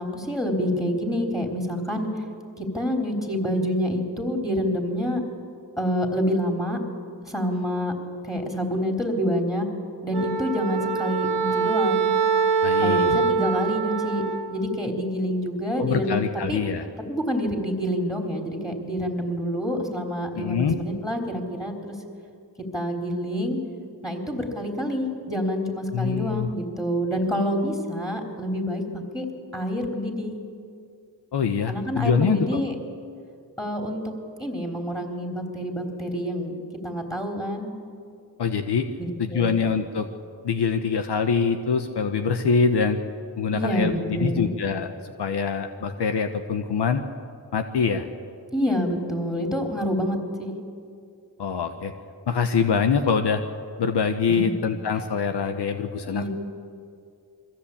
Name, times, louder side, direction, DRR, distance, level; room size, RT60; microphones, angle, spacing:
voice 1, 0.0-2.1 2.6-5.2 5.8-6.8 7.3-7.9 8.2-9.7 10.0-12.1 12.8-14.2 14.5-16.2 16.5-16.6 17.1-21.9 22.6-23.6 24.0-28.8 29.1-29.3 29.5-30.4 31.7-32.7 33.6-34.0 34.4-36.5 36.8-37.7 39.0-39.5 43.5-44.5 48.5-50.6 54.3-54.6 56.1-56.3, equal, 10° left, 2 dB, 3.8 m, -27 dB
Wind instrument woodwind instrument, 10.1-14.5, right 6 dB, 85° right, 1.4 m, -24 dB
voice 2, 12.6-13.1 15.8-16.9 20.3-20.7 25.9-26.5 31.3-32.6 38.4-38.9 39.2-40.1 40.4-43.0 43.4-44.9 45.2-47.0 47.5-48.1 51.4-51.9 52.3-53.4 53.8-56.3, left 6 dB, 75° left, 7 dB, 1.1 m, -24 dB
22.5 x 15.0 x 8.6 m, 2.3 s
cardioid pair, 45°, 41 cm